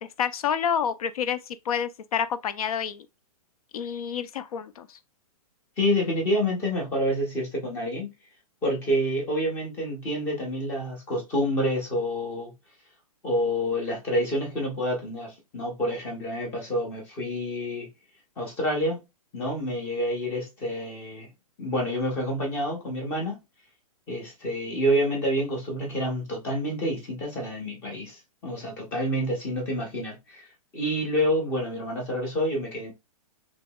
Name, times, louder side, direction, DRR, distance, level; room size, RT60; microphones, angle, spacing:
voice 1, 0.0-3.1 3.7-5.0, left 8 dB, 70° left, 0.4 m, -29 dB
voice 2, 5.8-8.1 8.6-12.5 13.2-17.9 18.4-19.0 19.3-21.3 21.6-23.4 24.1-30.5 30.7-32.9, equal, 10° left, 0.6 m, -28 dB
3.6 x 2.9 x 2.2 m
hypercardioid pair, 175°, 19 cm